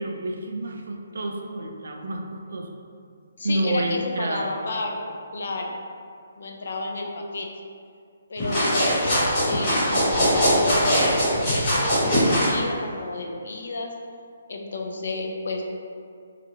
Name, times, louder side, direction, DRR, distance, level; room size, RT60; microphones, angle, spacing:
voice 1, 0.0-2.7 3.4-4.7, right 1 dB, 70° right, 2 dB, 0.3 m, -29 dB
voice 2, 3.4-5.0 5.3-5.8 6.4-7.5 8.3-13.9 14.5-15.6, left 2 dB, 60° left, 1 dB, 0.4 m, -31 dB
sound 1, 8.4-12.5, equal, 20° left, 0.8 m, -21 dB
2.9 x 2.4 x 2.6 m, 2.3 s
hypercardioid pair, 175°, 0 cm